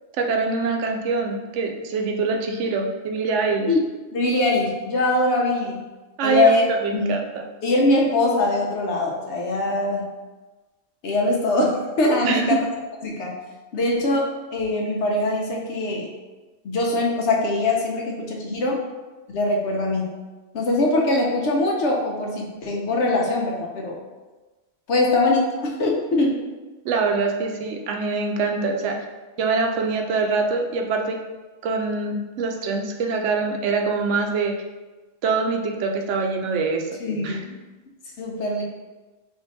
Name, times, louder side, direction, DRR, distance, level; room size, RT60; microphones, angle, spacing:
voice 1, 0.2-3.7 6.2-6.5 6.8-7.4 12.2-12.6 26.8-29.0 29.4-31.2 31.6-34.5 35.2-36.9 37.2-37.4, right 4 dB, 75° right, 3 dB, 0.9 m, -24 dB
voice 2, 4.1-5.8 6.2-6.6 6.9-7.1 7.6-10.1 11.0-12.7 13.0-13.3 13.7-14.3 14.5-16.1 16.6-18.8 19.3-20.1 20.5-24.0 24.9-26.4 37.0-37.6 38.2-38.6, left 2 dB, 70° left, -1 dB, 1.0 m, -22 dB
3.6 x 2.5 x 4.0 m, 1.2 s
omnidirectional pair, 1.3 m